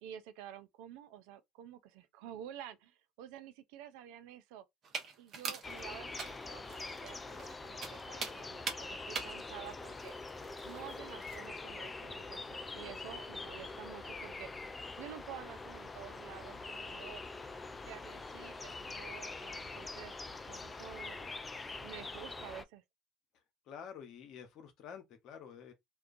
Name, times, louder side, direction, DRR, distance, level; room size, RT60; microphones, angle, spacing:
voice 1, 0.0-4.6 5.2-10.1 10.6-14.5 15.0-17.2 17.8-20.1 20.5-21.3 21.8-22.8, right 11 dB, 70° right, 0.4 m, -50 dB
sound 1, 4.8-11.5, right 5 dB, 45° right, 0.8 m, -44 dB
sound 2, 5.6-22.6, left 3 dB, 20° left, 0.3 m, -44 dB
voice 2, 23.7-25.7, left 7 dB, 55° left, 0.7 m, -49 dB
2.3 x 2.2 x 2.5 m
hypercardioid pair, 75°, 0 cm